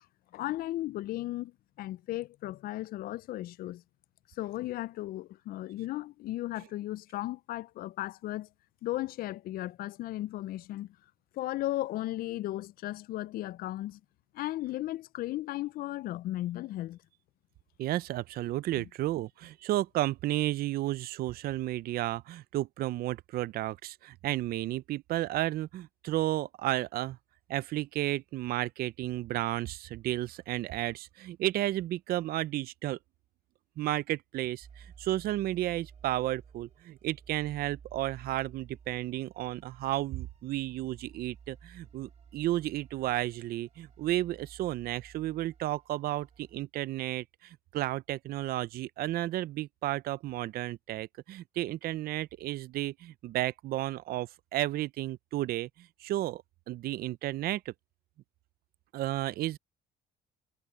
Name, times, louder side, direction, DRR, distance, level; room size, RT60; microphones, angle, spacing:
voice 1, 0.3-1.5 1.8-3.8 4.4-8.5 8.8-10.9 11.3-14.0 14.3-17.0, left 15 dB, 60° left, 0.4 m, -35 dB
voice 2, 17.8-27.2 27.5-33.0 33.8-57.7 58.9-59.6, right 15 dB, 65° right, 0.5 m, -33 dB
sound 1, 34.6-46.7, right 7 dB, 40° right, 2.8 m, -55 dB
cardioid pair, 110°, 17 cm